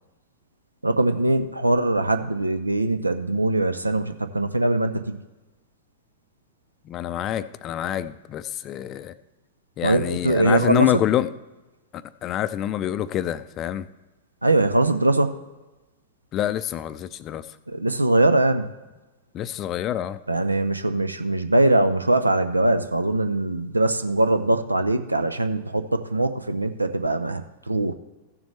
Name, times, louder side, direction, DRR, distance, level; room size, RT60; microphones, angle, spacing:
voice 1, 0.8-5.2 9.8-11.0 14.4-15.3 17.7-18.7 20.3-27.9, right 2 dB, 85° right, 9 dB, 0.5 m, -22 dB
voice 2, 6.9-9.1 9.8-11.3 11.9-13.9 16.3-17.5 19.3-20.2, left 12 dB, 30° left, 14 dB, 0.4 m, -26 dB
15.5 x 7.1 x 3.2 m, 1.1 s
figure-of-eight pair, 100°, 0 cm